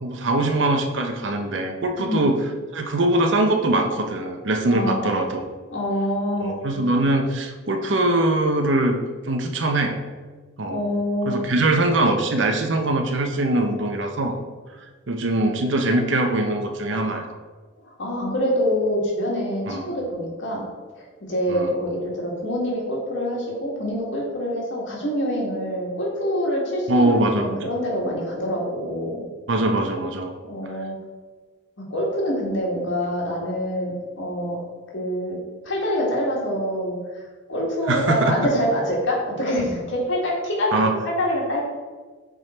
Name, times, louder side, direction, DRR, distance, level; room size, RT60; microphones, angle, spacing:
voice 1, 0.0-2.4 2.7-5.4 6.4-9.0 9.3-10.0 10.6-10.8 11.2-14.4 15.1-17.4 19.6-19.9 21.5-21.7 26.9-27.6 29.5-30.3 37.9-38.3 40.7-40.9, right 2 dB, 70° right, 5 dB, 0.8 m, -22 dB
voice 2, 4.7-5.1 5.7-6.6 10.7-11.4 17.8-20.6 21.0-29.2 30.4-30.9 31.8-34.6 34.9-35.4 35.6-37.0 37.5-41.6, equal, 65° left, -3 dB, 1.9 m, -25 dB
7.9 x 3.8 x 4.4 m, 1.4 s
head